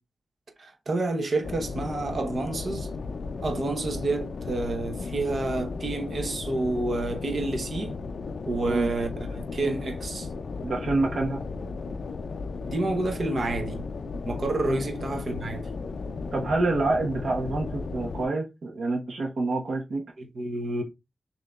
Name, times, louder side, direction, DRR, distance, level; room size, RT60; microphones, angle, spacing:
voice 1, 0.6-2.9 3.4-7.9 8.4-10.3 12.7-13.8 14.3-15.6 20.2-20.8, right 2 dB, 50° right, 0.9 m, -29 dB
sound 1, 1.4-18.3, left 4 dB, 65° left, 0.4 m, -35 dB
voice 2, 10.6-11.4 14.7-14.8 16.3-20.0, right 2 dB, 75° right, 1.1 m, -27 dB
6.4 x 2.8 x 2.3 m
wide cardioid pair, 175°, 0 cm